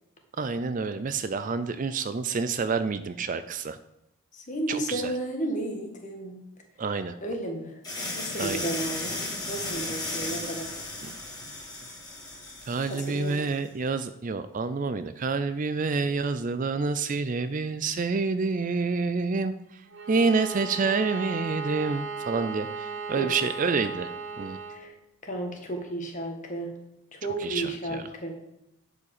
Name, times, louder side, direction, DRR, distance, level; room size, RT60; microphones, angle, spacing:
voice 1, 0.4-3.8 4.7-5.1 6.8-7.2 8.4-8.7 11.0-11.2 12.7-24.6 27.4-28.1, right 4 dB, 35° right, 12 dB, 0.4 m, -28 dB
voice 2, 4.3-6.4 7.2-7.7 8.1-10.8 12.9-13.5 23.2-23.3 24.7-24.9 25.2-26.7 27.1-28.3, right 1 dB, 35° left, 3 dB, 1.6 m, -33 dB
sound 1, 7.8-13.5, left 2 dB, 20° left, 3.5 m, -35 dB
Bowed string instrument, 19.9-24.8, right 5 dB, 55° right, 1.2 m, -36 dB
11.0 x 5.0 x 6.6 m, 0.87 s
head